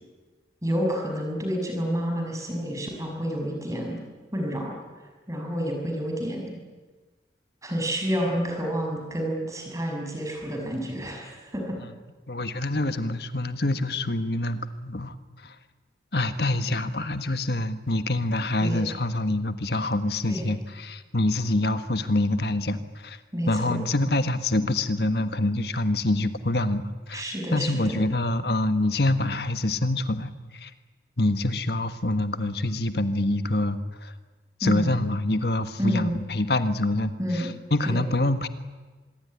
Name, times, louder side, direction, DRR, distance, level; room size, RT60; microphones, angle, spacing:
voice 1, 0.6-4.0 4.3-4.8 5.3-6.6 7.6-11.8 18.6-18.8 20.3-20.5 23.3-23.8 27.1-28.0 34.6-34.9 35.8-36.2 37.2-37.5 37.8-38.0, equal, 20° right, 1 dB, 6.6 m, -29 dB
voice 2, 12.3-15.1 15.4-15.5 16.1-23.2 23.5-27.2 27.5-30.7 31.2-34.1 34.6-38.5, left 2 dB, 65° left, 10 dB, 1.6 m, -26 dB
25.5 x 22.5 x 9.9 m, 1.3 s
head